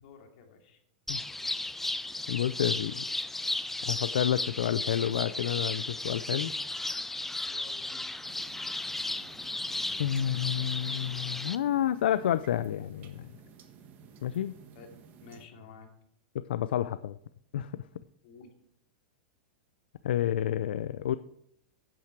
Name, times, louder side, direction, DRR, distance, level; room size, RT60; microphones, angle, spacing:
voice 1, 0.0-0.8 7.5-8.2 9.8-10.0 14.7-15.9 18.2-18.5, left 5 dB, 60° left, 2 dB, 2.6 m, -52 dB
sound 1, 1.1-11.6, left 2 dB, 5° left, 0.5 m, -35 dB
voice 2, 2.3-3.0 3.8-6.5 10.0-13.3 14.2-14.6 16.3-17.2 17.5-17.8 20.0-21.2, left 11 dB, 85° left, 13 dB, 0.5 m, -29 dB
sound 2, 8.2-15.5, right 7 dB, 35° right, 1.3 m, -53 dB
10.5 x 8.8 x 4.7 m, 0.73 s
hypercardioid pair, 135°, 5 cm